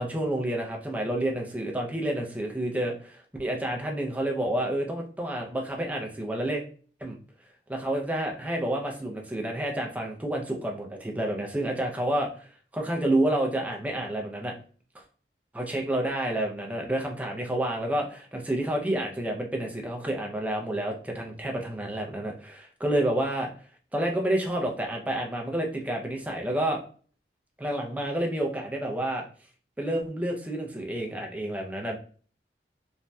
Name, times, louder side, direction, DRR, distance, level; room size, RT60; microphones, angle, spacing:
voice 1, 0.0-6.6 7.0-7.2 7.7-14.5 14.9-15.0 15.5-23.5 23.9-26.8 27.6-29.2 29.8-32.0, right 1 dB, 10° right, 1 dB, 0.4 m, -29 dB
3.2 x 2.2 x 2.6 m, 0.42 s
head